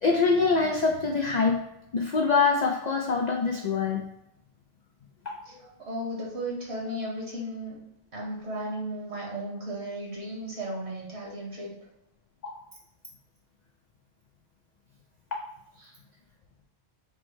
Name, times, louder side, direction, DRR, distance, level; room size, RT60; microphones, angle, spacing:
voice 1, 0.0-1.6 1.9-4.0 5.3-5.4 12.4-12.6 15.3-15.5, left 4 dB, 80° left, 2 dB, 0.3 m, -24 dB
voice 2, 5.8-7.8 8.1-11.7 15.8-15.9, right 1 dB, 60° right, -3 dB, 1.6 m, -35 dB
4.4 x 2.1 x 4.5 m, 0.82 s
omnidirectional pair, 1.3 m